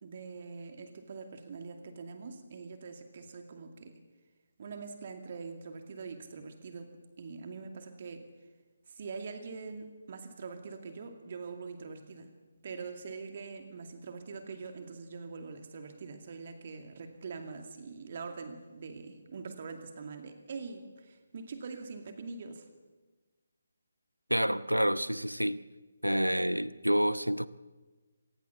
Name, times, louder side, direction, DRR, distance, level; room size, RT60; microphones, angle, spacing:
voice 1, 0.0-4.0 4.6-8.3 8.9-12.3 12.6-22.7, right 4 dB, 40° right, 6 dB, 2.3 m, -43 dB
voice 2, 24.3-25.6 26.0-27.5, equal, 90° right, 16 dB, 0.9 m, -28 dB
26.0 x 19.0 x 7.0 m, 1.3 s
figure-of-eight pair, 145°, 0 cm